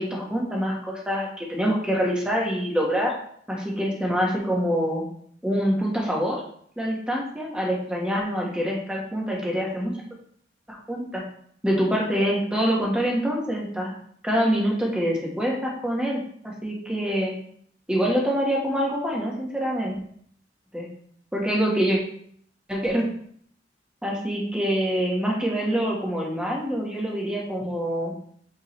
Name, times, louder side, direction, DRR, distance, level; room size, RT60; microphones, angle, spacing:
voice 1, 0.0-3.1 3.5-5.0 5.4-6.4 6.8-9.9 10.7-11.2 11.6-13.9 14.2-17.3 17.9-19.9 20.7-20.9 21.3-22.0 22.7-23.0 24.0-28.1, equal, 5° right, -3 dB, 1.3 m, -25 dB
8.5 x 3.7 x 3.1 m, 0.64 s
head